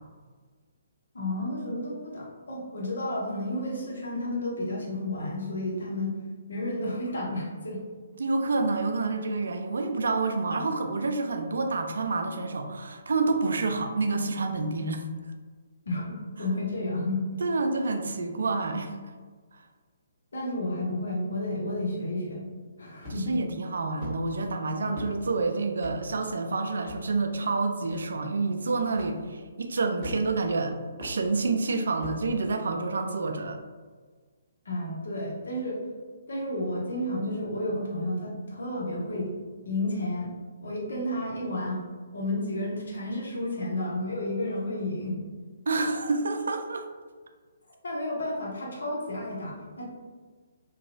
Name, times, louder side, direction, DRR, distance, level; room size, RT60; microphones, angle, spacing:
voice 1, 1.1-6.2 6.5-7.8 15.9-17.2 20.3-22.4 22.8-23.4 34.6-35.8 36.3-39.3 39.6-40.3 40.6-41.8 42.1-45.2 47.8-49.8, left 1 dB, 70° left, -3 dB, 0.9 m, -31 dB
voice 2, 8.2-15.1 17.4-19.0 23.1-33.6 45.7-46.9, right 3 dB, 65° right, 5 dB, 0.3 m, -28 dB
sound 1, 23.0-23.4 24.0-24.2 24.9-25.1 25.8-26.0 26.9-27.0 27.9-28.0 29.0-29.1 30.0-30.4 31.0-31.2 32.0-32.2, left 1 dB, 20° left, 1.5 m, -38 dB
2.8 x 2.3 x 2.6 m, 1.5 s
figure-of-eight pair, 135°, 0 cm